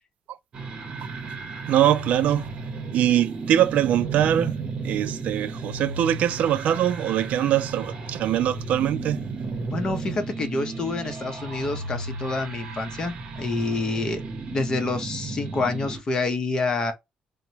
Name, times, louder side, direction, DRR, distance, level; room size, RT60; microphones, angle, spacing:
sound 1, 0.5-16.0, right 3 dB, 45° right, 0.8 m, -34 dB
voice 1, 1.7-2.5 2.9-4.6 4.8-9.3, right 11 dB, 65° right, 0.3 m, -22 dB
voice 2, 9.7-14.2 14.5-16.9, left 3 dB, 30° left, 0.7 m, -27 dB
2.9 x 2.1 x 2.6 m
cardioid pair, 140°, 3 cm